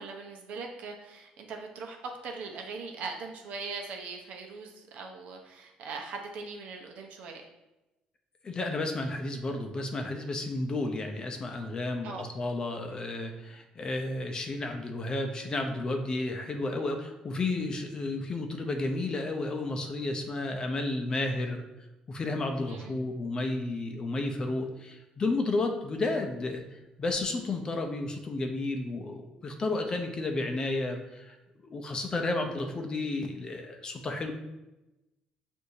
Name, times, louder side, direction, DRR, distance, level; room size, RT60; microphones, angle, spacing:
voice 1, 0.0-2.0 2.2-7.4 12.0-12.2 22.7-23.0, right 4 dB, 70° right, 2 dB, 0.7 m, -40 dB
voice 2, 8.4-21.6 22.1-31.4 31.7-34.3, left 2 dB, 30° left, 4 dB, 0.6 m, -32 dB
6.1 x 2.6 x 2.7 m, 0.99 s
cardioid pair, 120°, 3 cm